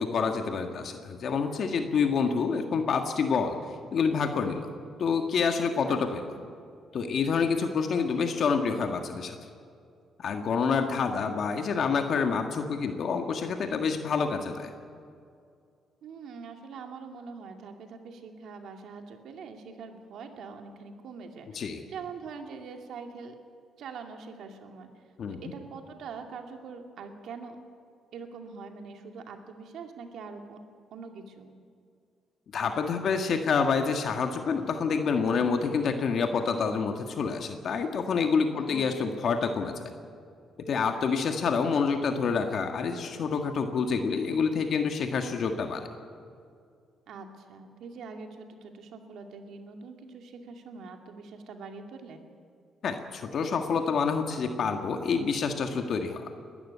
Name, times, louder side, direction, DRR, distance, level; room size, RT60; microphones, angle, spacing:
voice 1, 0.0-3.6 3.9-4.7 5.0-6.3 6.9-9.4 10.2-14.7 21.5-21.8 25.2-25.5 32.5-39.9 40.7-45.9 52.8-56.3, left 5 dB, 60° left, 5 dB, 1.6 m, -27 dB
voice 2, 5.9-6.2 16.0-23.3 23.8-24.9 25.3-27.6 28.1-30.6 30.9-31.5 38.5-38.9 47.1-52.3, right 5 dB, 75° right, 4 dB, 2.4 m, -43 dB
21.0 x 13.0 x 9.6 m, 2.3 s
cardioid pair, 90°, 0 cm